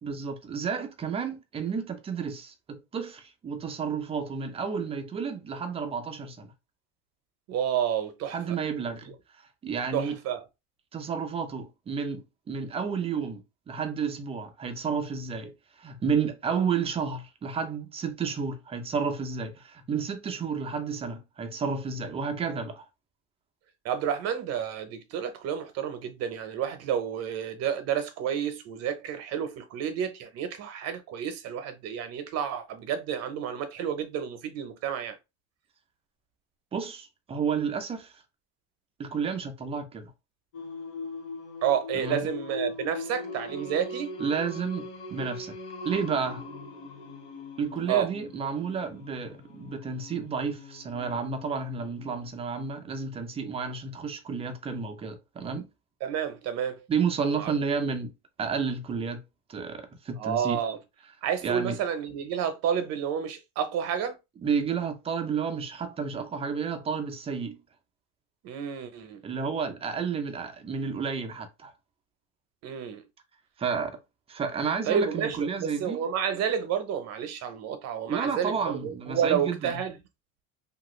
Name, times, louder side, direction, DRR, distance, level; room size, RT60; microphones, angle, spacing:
voice 1, 0.0-6.5 8.3-9.1 9.6-10.2 10.9-13.4 13.7-15.5 15.8-22.8 36.7-38.2 39.0-40.1 41.9-42.3 44.2-45.6 45.8-46.4 47.6-55.7 56.9-58.1 58.4-59.2 59.5-60.6 61.4-61.8 64.4-67.6 69.2-71.7 73.6-74.0 74.3-76.0 78.1-79.8, right 5 dB, 20° right, 0.4 m, -31 dB
voice 2, 7.5-8.4 9.9-10.4 23.8-35.2 41.6-44.1 47.9-48.1 56.0-56.8 57.4-57.5 60.2-60.8 61.2-64.2 68.4-69.2 72.6-73.0 74.8-78.5 78.8-80.0, right 8 dB, 50° right, 0.7 m, -30 dB
Singing, 40.5-52.3, left 3 dB, 45° left, 1.3 m, -41 dB
2.9 x 2.4 x 3.0 m
cardioid pair, 155°, 34 cm